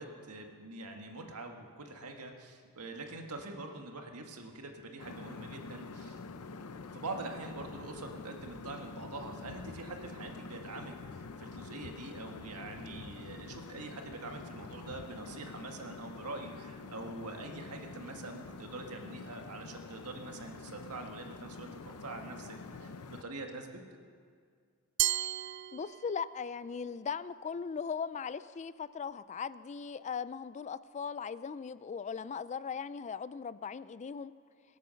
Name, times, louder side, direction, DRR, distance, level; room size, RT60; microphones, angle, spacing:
voice 1, 0.0-6.2 6.9-23.7, right 2 dB, 80° right, 3 dB, 1.7 m, -44 dB
sound 1, 5.0-23.2, left 4 dB, 80° left, 0.7 m, -47 dB
Glass, 25.0-26.4, right 14 dB, 55° right, 0.3 m, -33 dB
voice 2, 25.7-34.3, left 6 dB, 30° left, 16 dB, 0.3 m, -38 dB
23.5 x 8.3 x 6.4 m, 2.1 s
head